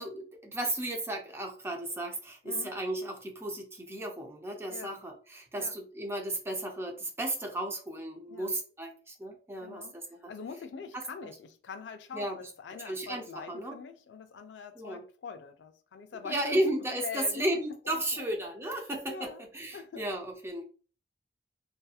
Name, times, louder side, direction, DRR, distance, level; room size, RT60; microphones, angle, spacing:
voice 1, 0.0-10.3 10.9-11.0 12.1-12.4 12.8-13.8 14.8-15.0 16.2-20.6, right 1 dB, 15° right, 0.5 m, -34 dB
voice 2, 4.7-5.0 5.6-5.8 8.3-8.6 9.6-10.0 10.3-16.6 17.0-17.5 17.8-18.3 19.1-19.4 19.7-20.0, left 5 dB, 85° left, 0.4 m, -43 dB
2.7 x 2.4 x 2.3 m
head